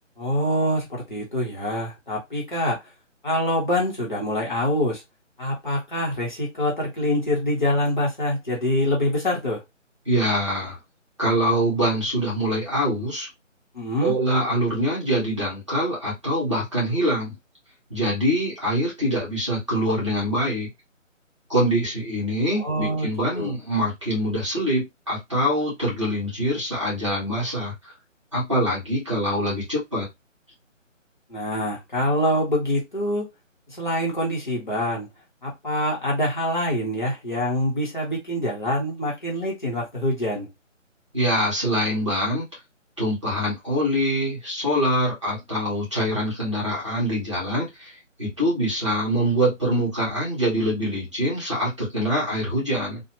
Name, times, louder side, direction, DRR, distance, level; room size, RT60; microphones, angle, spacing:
voice 1, 0.2-2.8 3.2-5.0 5.4-9.6 13.7-14.1 22.6-23.1 23.3-23.5 31.3-33.2 33.7-35.1 35.4-40.5, left 1 dB, 35° left, 1.2 m, -25 dB
voice 2, 10.0-10.8 11.2-13.3 14.0-17.3 17.9-20.7 21.5-27.7 28.3-30.1 41.1-42.4 43.0-53.0, equal, 25° right, 1.1 m, -24 dB
2.8 x 2.4 x 2.9 m
figure-of-eight pair, 175°, 39 cm